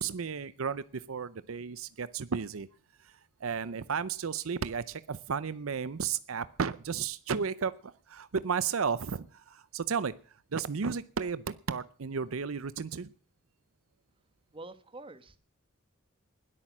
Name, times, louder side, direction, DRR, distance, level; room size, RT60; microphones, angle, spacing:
voice 1, 0.0-2.7 3.0-3.1 3.4-10.1 10.5-13.1, right 6 dB, 70° right, 16 dB, 0.6 m, -33 dB
voice 2, 14.5-15.4, right 2 dB, 25° right, 12 dB, 1.3 m, -46 dB
20.0 x 8.7 x 6.1 m, 0.42 s
head